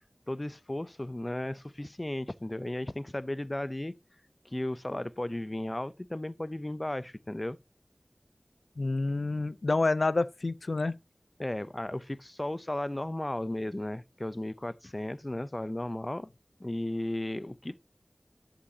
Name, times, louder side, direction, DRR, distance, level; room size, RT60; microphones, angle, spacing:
voice 1, 0.3-3.9 4.4-7.6 11.4-16.3 16.6-17.8, left 1 dB, 35° left, 0.7 m, -35 dB
voice 2, 8.8-11.0, left 3 dB, 85° left, 0.6 m, -28 dB
11.5 x 7.4 x 2.8 m
wide cardioid pair, 45°, 0 cm